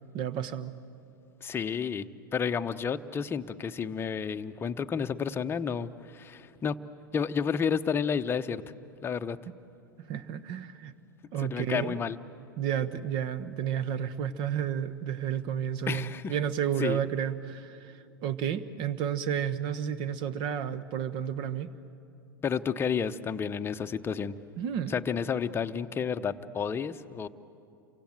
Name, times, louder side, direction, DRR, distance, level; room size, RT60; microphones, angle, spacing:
voice 1, 0.1-0.7 10.1-10.9 11.3-12.0 12.6-17.9 18.2-21.7 24.6-24.9, right 9 dB, 45° right, 14 dB, 1.3 m, -31 dB
voice 2, 1.4-6.8 7.1-8.6 9.0-9.4 11.4-12.2 15.9-16.4 16.8-17.0 22.4-24.3 24.9-27.3, left 6 dB, 20° left, 9 dB, 0.9 m, -31 dB
29.0 x 24.5 x 7.9 m, 2.7 s
figure-of-eight pair, 95°, 12 cm